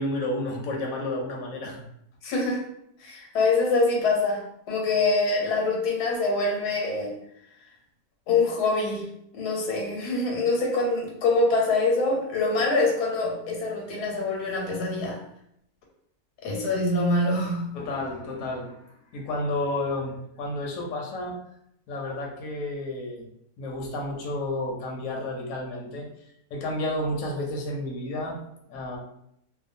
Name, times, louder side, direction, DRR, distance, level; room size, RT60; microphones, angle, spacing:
voice 1, 0.0-1.9 17.7-18.8 19.1-21.4 21.9-23.2 23.6-26.1 26.5-28.4 28.7-29.0, left 1 dB, 65° left, -1 dB, 0.9 m, -31 dB
voice 2, 2.2-2.6 3.0-7.1 8.3-9.1 9.3-15.2 16.4-17.8, left 3 dB, 85° left, -1 dB, 1.3 m, -25 dB
2.6 x 2.2 x 2.5 m, 0.75 s
omnidirectional pair, 1.6 m